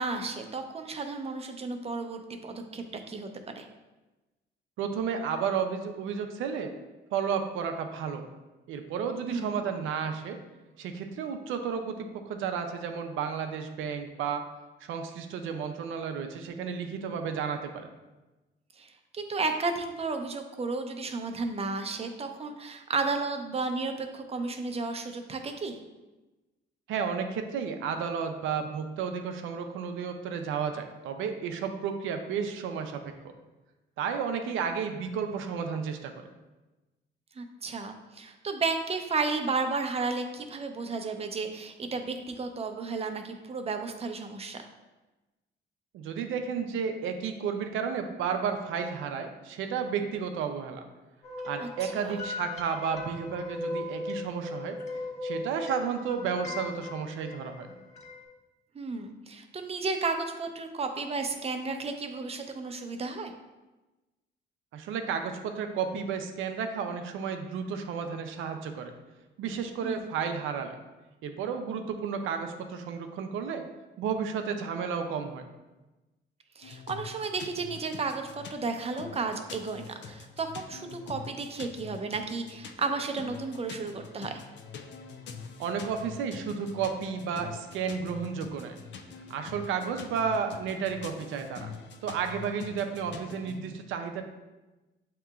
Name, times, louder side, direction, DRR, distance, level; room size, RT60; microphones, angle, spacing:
voice 1, 0.0-3.7 9.3-9.6 18.8-25.8 37.4-44.7 51.6-52.1 58.7-63.3 69.8-70.0 76.6-84.4, right 4 dB, 30° right, 5 dB, 0.6 m, -33 dB
voice 2, 4.8-6.7 7.1-8.3 8.7-10.4 10.8-14.4 14.8-17.9 26.9-33.1 34.0-36.1 45.9-50.8 51.5-54.8 55.2-57.7 64.7-68.9 69.4-70.8 71.2-73.6 74.0-75.5 85.6-88.8 89.3-91.7 92.0-94.2, right 6 dB, 85° right, 6 dB, 0.5 m, -32 dB
sound 1, 51.2-58.2, left 2 dB, 35° left, 1.4 m, -38 dB
sound 2, 76.6-93.6, left 5 dB, 65° left, 0.5 m, -45 dB
7.6 x 2.9 x 2.4 m, 1.1 s
cardioid pair, 90°, 20 cm